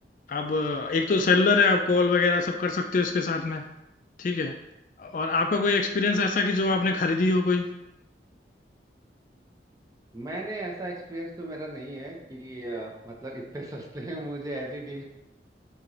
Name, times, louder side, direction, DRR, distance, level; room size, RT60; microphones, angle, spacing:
voice 1, 0.3-3.6 4.2-4.5 5.0-7.6, left 3 dB, 45° left, 5 dB, 0.3 m, -24 dB
voice 2, 10.1-15.0, right 1 dB, 20° right, -1 dB, 0.7 m, -36 dB
4.3 x 3.0 x 3.8 m, 0.90 s
head